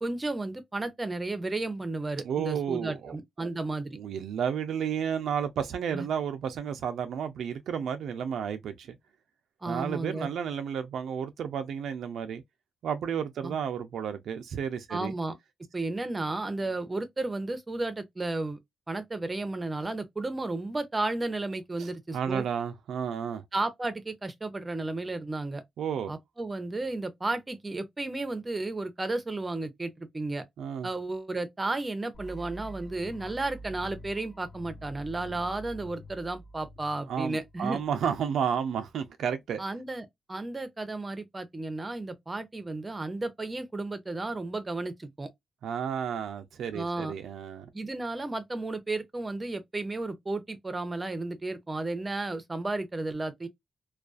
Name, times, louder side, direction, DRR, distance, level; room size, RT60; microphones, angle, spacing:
voice 1, 0.0-4.0 5.9-6.0 9.6-10.3 13.4-13.5 14.9-15.4 15.7-18.6 18.9-22.5 23.5-25.6 26.1-30.4 30.8-37.8 39.6-45.3 46.7-47.1 47.7-53.5, right 2 dB, 20° right, 0.6 m, -33 dB
voice 2, 2.2-3.5 3.9-9.0 9.7-12.4 12.8-15.1 21.8-21.9 22.1-23.4 25.8-26.1 30.6-30.9 37.1-39.6 45.6-47.7, right 7 dB, 85° right, 0.3 m, -32 dB
sound 1, 32.1-38.1, right 1 dB, 45° left, 0.4 m, -46 dB
2.3 x 2.3 x 2.3 m
cardioid pair, 105°, 0 cm